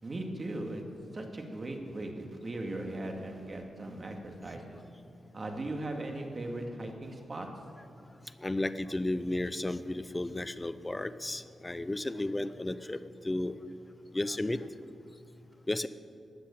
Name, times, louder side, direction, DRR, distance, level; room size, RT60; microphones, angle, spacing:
voice 1, 0.0-0.8 1.1-4.8 5.3-7.5, right 1 dB, 35° right, 3 dB, 2.3 m, -38 dB
voice 2, 8.4-13.5 14.1-14.6 15.7-15.9, left 1 dB, 15° left, 12 dB, 0.6 m, -33 dB
16.0 x 9.8 x 8.6 m, 2.6 s
wide cardioid pair, 110°, 0 cm